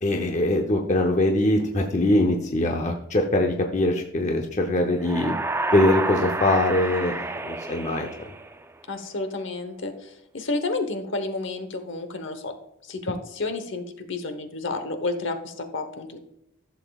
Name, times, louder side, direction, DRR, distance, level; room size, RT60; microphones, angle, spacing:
voice 1, 0.0-5.4 5.7-8.1, left 1 dB, 35° left, 3 dB, 0.7 m, -22 dB
sound 1, 5.0-8.8, right 2 dB, 10° right, 0.3 m, -30 dB
voice 2, 8.9-12.5 12.8-16.2, left 3 dB, 55° left, 8 dB, 1.0 m, -31 dB
14.5 x 7.1 x 2.3 m, 0.82 s
head